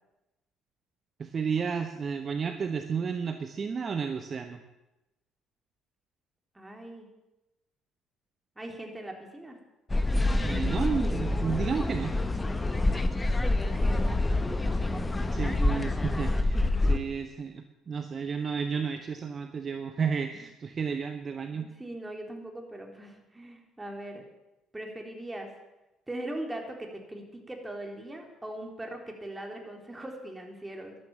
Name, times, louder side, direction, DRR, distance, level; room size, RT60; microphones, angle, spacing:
voice 1, 1.2-4.6 10.4-12.2 15.3-21.7, right 6 dB, 40° right, 7 dB, 1.0 m, -32 dB
voice 2, 6.5-7.1 8.6-9.6 13.8-14.6 21.5-24.2 24.7-25.5 26.1-31.0, right 1 dB, 15° right, 2 dB, 3.8 m, -40 dB
sound 1, 9.9-17.0, left 2 dB, 20° left, 1.2 m, -27 dB
13.5 x 12.0 x 7.4 m, 0.98 s
figure-of-eight pair, 50°, 0 cm